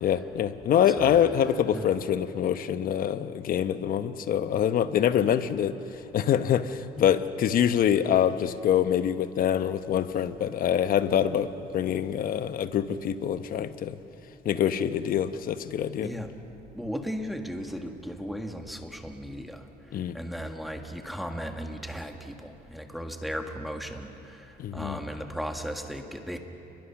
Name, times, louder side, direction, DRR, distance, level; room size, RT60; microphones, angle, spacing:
voice 1, 0.0-14.0 14.4-16.1 19.9-20.1 24.6-25.0, left 9 dB, 60° left, 11 dB, 1.0 m, -25 dB
voice 2, 16.7-19.7 20.1-24.5 24.7-26.4, equal, ahead, 4 dB, 1.7 m, -36 dB
29.0 x 22.0 x 5.9 m, 2.9 s
cardioid pair, 110°, 17 cm